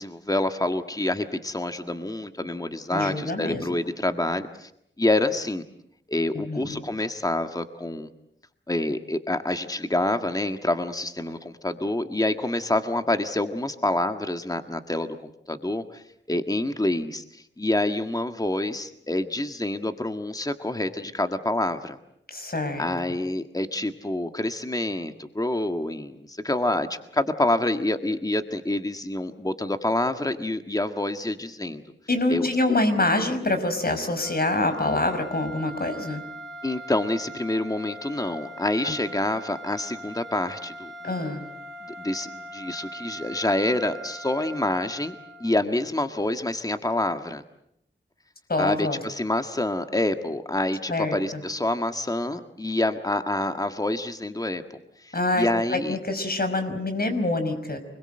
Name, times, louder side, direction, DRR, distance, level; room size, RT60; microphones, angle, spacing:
voice 1, 0.0-4.7 5.0-5.6 6.1-8.1 8.7-15.2 15.5-16.0 16.3-22.0 22.8-31.8 32.3-32.5 36.6-41.3 41.8-45.2 45.4-47.4 48.6-54.6 55.0-56.0, left 1 dB, 15° left, 8 dB, 1.7 m, -27 dB
voice 2, 2.9-3.6 6.3-6.8 22.3-22.8 32.1-36.2 38.8-39.0 41.0-41.4 48.5-49.0 50.9-51.4 55.1-57.8, left 2 dB, 45° left, 8 dB, 5.4 m, -26 dB
sound 1, 34.1-45.7, right 1 dB, ahead, 4.1 m, -41 dB
28.5 x 22.0 x 7.8 m, 0.76 s
wide cardioid pair, 55°, 21 cm